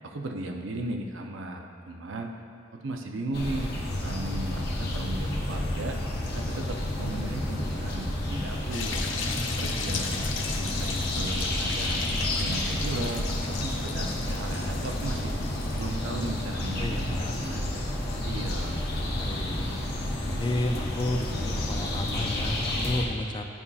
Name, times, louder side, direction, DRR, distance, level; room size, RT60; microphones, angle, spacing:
voice 1, 0.0-2.3 2.7-3.7 4.0-6.0 6.3-9.3 9.6-10.2 10.6-12.1 12.4-15.3 15.8-18.0 18.2-18.8, right 2 dB, 85° right, 3 dB, 0.6 m, -36 dB
sound 1, 3.3-23.0, left 1 dB, 55° left, 0.9 m, -30 dB
sound 2, 8.7-15.9, left 4 dB, 80° left, 0.6 m, -36 dB
voice 2, 16.8-17.4 19.2-19.7 20.2-23.5, left 1 dB, 25° left, 5 dB, 0.4 m, -31 dB
11.0 x 5.4 x 2.4 m, 2.5 s
head